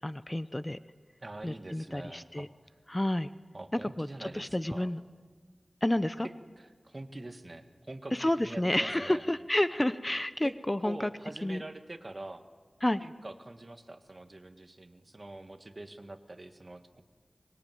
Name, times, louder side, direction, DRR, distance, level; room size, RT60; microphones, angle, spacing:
voice 1, 0.0-0.8 1.4-2.5 2.9-3.3 3.8-5.0 5.8-6.3 8.1-11.1 11.4-11.6 12.8-13.0, left 1 dB, 20° left, 13 dB, 0.7 m, -30 dB
voice 2, 1.2-2.5 3.5-4.9 6.2-9.2 10.4-10.5 10.8-12.5 13.0-17.0, right 2 dB, 40° right, 8 dB, 1.8 m, -45 dB
24.0 x 21.0 x 9.4 m, 1.5 s
wide cardioid pair, 60°, 0 cm